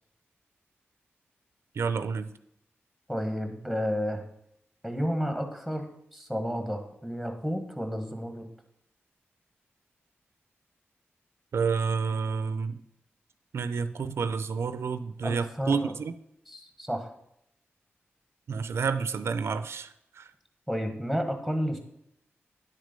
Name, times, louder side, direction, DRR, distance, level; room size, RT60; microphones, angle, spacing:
voice 1, 1.8-2.3 11.5-12.8 13.5-16.1 18.5-20.3, right 5 dB, 85° right, 12 dB, 0.5 m, -29 dB
voice 2, 3.1-4.2 4.8-8.5 15.2-15.9 16.5-17.1 20.7-21.8, equal, 5° left, 6 dB, 1.3 m, -31 dB
10.5 x 6.5 x 5.2 m, 0.76 s
wide cardioid pair, 175°, 4 cm